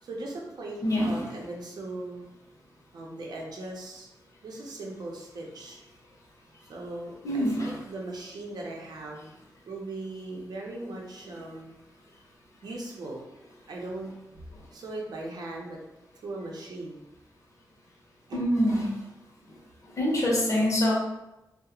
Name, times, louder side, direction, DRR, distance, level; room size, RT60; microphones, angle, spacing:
voice 1, 0.0-2.2 2.9-4.1 4.4-5.8 6.7-9.3 9.7-11.7 12.6-13.2 13.7-14.1 14.7-15.8 16.2-17.0 18.3-18.4, right 2 dB, 75° right, -2 dB, 0.6 m, -39 dB
voice 2, 0.8-1.2 7.2-7.7 18.3-18.8 19.9-20.9, equal, 50° left, -3 dB, 0.6 m, -25 dB
2.3 x 2.0 x 2.9 m, 0.95 s
wide cardioid pair, 135°, 7 cm